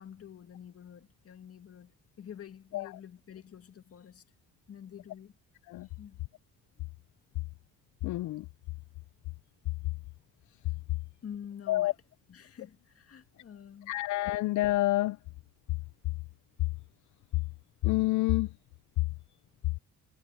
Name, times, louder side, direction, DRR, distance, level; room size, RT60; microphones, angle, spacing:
voice 1, 0.0-4.2 4.7-5.4 6.0-6.2 11.2-12.0 12.3-13.9, left 8 dB, 50° left, 2.0 m, -48 dB
voice 2, 8.0-8.4 11.7-11.9 13.9-15.2 17.8-18.5, left 17 dB, 75° left, 0.5 m, -27 dB
cardioid pair, 90°, 30 cm